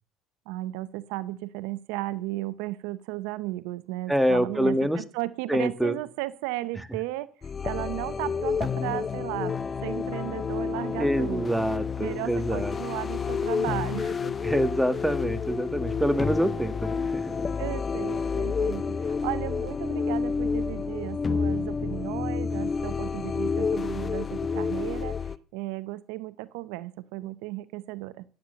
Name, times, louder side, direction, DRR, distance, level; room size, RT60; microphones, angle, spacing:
voice 1, 0.5-7.3 7.6-9.6 9.8-11.5 12.0-14.3 17.6-28.2, right 17 dB, 80° right, 17 dB, 0.7 m, -35 dB
voice 2, 4.1-5.0 5.5-6.0 11.0-12.7 14.4-17.4, equal, 5° right, 10 dB, 1.8 m, -26 dB
sound 1, 7.4-25.4, left 5 dB, 35° left, 0.9 m, -29 dB
15.0 x 9.1 x 6.9 m, 0.39 s
supercardioid pair, 70°, 0 cm